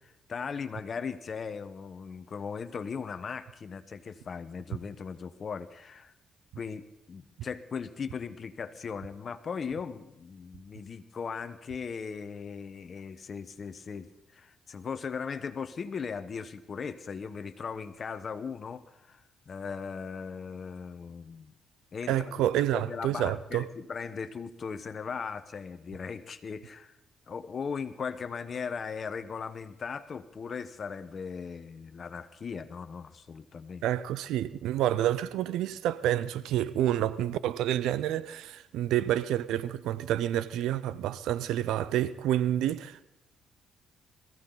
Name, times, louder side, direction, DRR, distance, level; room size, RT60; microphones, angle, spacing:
voice 1, 0.0-6.1 6.6-21.5 21.9-26.9 27.3-33.8, left 6 dB, 45° left, 1.1 m, -38 dB
voice 2, 22.1-23.6 33.8-43.0, right 12 dB, 90° right, 0.6 m, -28 dB
22.0 x 15.0 x 4.0 m
cardioid pair, 90°, 0 cm